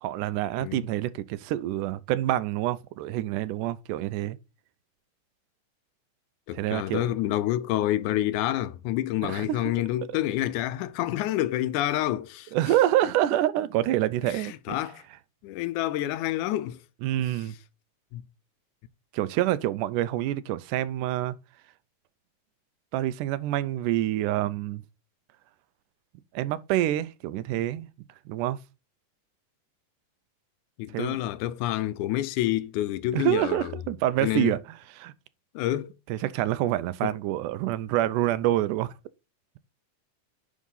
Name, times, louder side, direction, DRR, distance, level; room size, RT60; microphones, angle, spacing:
voice 1, 0.0-4.4 6.5-7.1 9.2-9.7 12.5-14.8 17.0-17.6 19.1-21.3 22.9-24.8 26.3-27.9 28.3-28.6 30.9-31.2 33.1-34.6 35.0-35.1 36.1-38.9, right 13 dB, 85° right, 2.1 m, -27 dB
voice 2, 6.5-12.5 14.2-15.0 15.4-16.8 18.1-18.2 30.8-33.7 34.2-34.6 35.6-35.9, left 14 dB, 80° left, 2.0 m, -28 dB
9.8 x 3.7 x 5.5 m
omnidirectional pair, 3.6 m